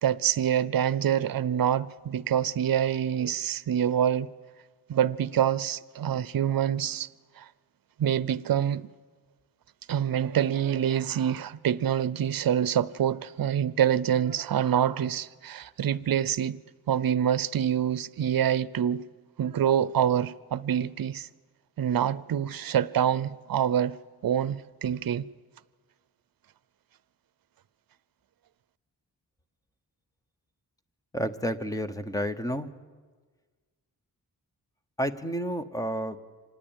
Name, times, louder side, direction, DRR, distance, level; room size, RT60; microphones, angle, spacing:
voice 1, 0.0-4.3 4.9-7.1 7.4-7.5 8.0-8.9 9.9-16.6 16.9-19.1 19.4-21.3 21.8-25.3, right 9 dB, 65° right, 0.6 m, -26 dB
voice 2, 31.1-32.7 35.0-36.2, equal, 10° left, 0.9 m, -30 dB
25.5 x 19.0 x 8.9 m
wide cardioid pair, 170°, 37 cm